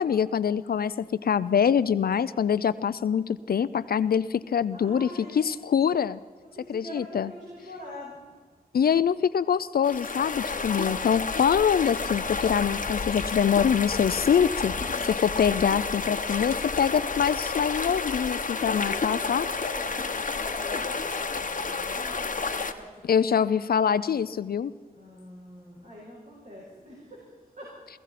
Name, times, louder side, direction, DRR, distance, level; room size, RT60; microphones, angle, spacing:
voice 1, 0.0-6.2 6.7-7.3 8.7-14.7 15.0-19.5 23.0-24.7, left 7 dB, 75° left, 15 dB, 0.4 m, -24 dB
voice 2, 4.7-5.5 6.5-8.2 18.9-22.8 23.2-23.4 24.9-27.2 27.5-27.7, left 1 dB, 55° right, -4 dB, 5.2 m, -44 dB
sound 1, 9.8-22.7, left 4 dB, 55° left, 1.0 m, -30 dB
23.0 x 14.5 x 4.2 m, 1.5 s
cardioid pair, 60°, 16 cm